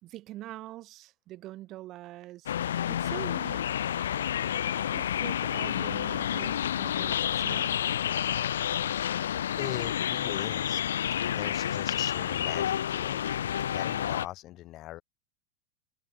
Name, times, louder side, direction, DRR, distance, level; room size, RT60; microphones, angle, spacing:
voice 1, 0.0-2.5 2.9-3.7 4.9-8.0, right 15 dB, 40° right, 2.5 m, -44 dB
sound 1, 2.5-14.3, left 10 dB, 90° left, 1.1 m, -29 dB
voice 2, 9.6-10.9 11.2-13.2 13.6-15.0, left 15 dB, 40° left, 1.4 m, -41 dB
hypercardioid pair, 120°, 0 cm